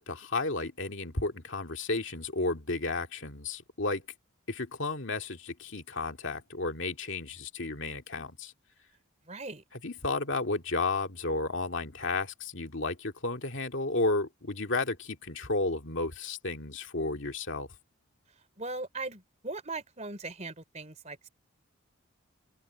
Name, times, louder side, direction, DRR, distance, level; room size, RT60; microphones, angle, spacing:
voice 1, 0.0-4.0 4.5-8.5 9.7-17.7, left 3 dB, 55° left, 2.3 m, -32 dB
voice 2, 9.3-9.6 18.6-21.3, right 3 dB, 30° right, 3.4 m, -39 dB
open air
head